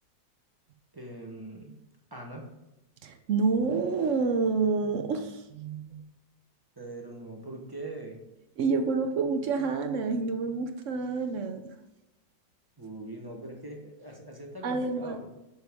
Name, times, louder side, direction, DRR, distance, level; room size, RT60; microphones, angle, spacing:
voice 1, 0.9-1.8 2.1-2.5 6.8-8.2 12.8-15.3, right 2 dB, 20° right, 1 dB, 0.6 m, -42 dB
voice 2, 3.0-6.0 8.6-11.6 14.6-15.1, right 4 dB, 65° right, 7 dB, 0.8 m, -28 dB
6.7 x 6.1 x 3.5 m, 0.93 s
omnidirectional pair, 1.9 m